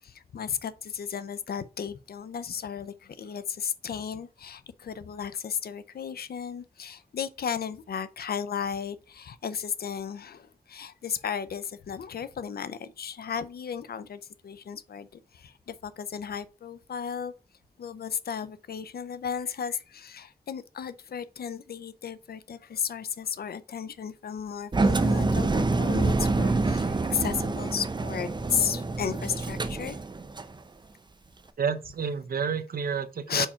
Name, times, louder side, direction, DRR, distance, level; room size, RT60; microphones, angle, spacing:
voice 1, 0.0-17.3 17.8-30.0 33.3-33.5, left 7 dB, 85° left, 0.6 m, -34 dB
Engine, 24.7-30.5, right 3 dB, 30° right, 0.6 m, -26 dB
voice 2, 31.6-33.5, right 6 dB, 70° right, 0.7 m, -30 dB
4.6 x 4.4 x 5.6 m
wide cardioid pair, 100°, 16 cm